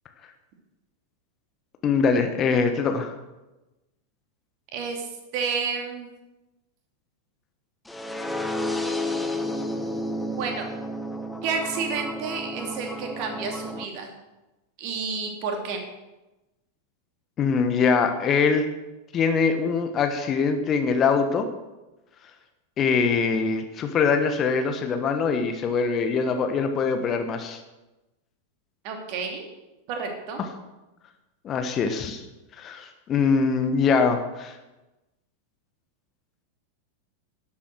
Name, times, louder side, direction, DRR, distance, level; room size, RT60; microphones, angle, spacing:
voice 1, 1.8-3.2 17.4-18.7 19.1-21.5 22.8-27.6 30.4-30.5 31.4-32.2 32.6-34.6, left 5 dB, 30° left, 7 dB, 1.2 m, -23 dB
voice 2, 4.7-6.1 10.3-10.7 11.4-14.1 14.8-15.8 28.8-29.5 29.9-30.4, right 5 dB, 45° right, 3 dB, 2.6 m, -30 dB
sound 1, 7.9-13.8, left 1 dB, 5° left, 1.1 m, -31 dB
12.0 x 8.3 x 6.4 m, 1.0 s
figure-of-eight pair, 90°, 0 cm